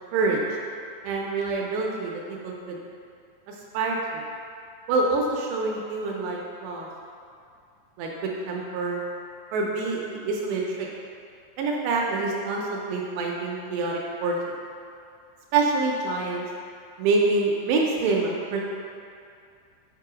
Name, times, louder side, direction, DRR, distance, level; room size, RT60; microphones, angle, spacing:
voice 1, 1.0-2.1 2.4-2.8 3.7-4.0 4.9-6.9 8.0-8.1 8.5-9.0 9.5-10.9 11.6-14.4 15.5-16.5 17.0-18.6, right 3 dB, 80° right, -1 dB, 2.6 m, -26 dB
8.1 x 3.7 x 4.9 m, 2.4 s
omnidirectional pair, 5.3 m